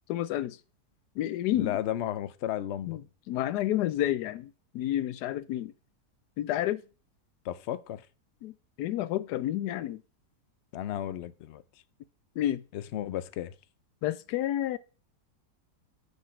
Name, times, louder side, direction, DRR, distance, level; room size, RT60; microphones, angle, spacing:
voice 1, 0.1-0.6 1.2-1.8 2.9-3.0 3.3-5.7 6.4-6.8 8.4-8.5 8.8-10.0 12.4-12.6 14.0-14.8, left 13 dB, 85° left, 1.2 m, -30 dB
voice 2, 1.6-3.0 7.4-8.1 10.7-11.6 12.7-13.5, left 11 dB, 65° left, 0.7 m, -34 dB
6.7 x 4.8 x 6.2 m
omnidirectional pair, 1.7 m